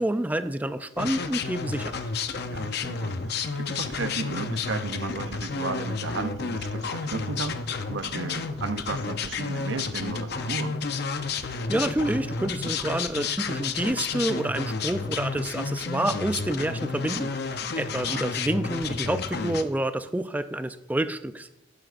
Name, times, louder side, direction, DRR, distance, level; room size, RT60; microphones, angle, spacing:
voice 1, 0.0-2.0 11.4-21.5, right 1 dB, 10° right, 11 dB, 0.3 m, -28 dB
sound 1, 1.0-19.6, left 4 dB, 55° left, 0.6 m, -31 dB
voice 2, 2.4-10.8 17.9-18.3, right 4 dB, 75° right, 11 dB, 0.6 m, -34 dB
11.5 x 9.9 x 2.5 m, 0.93 s
head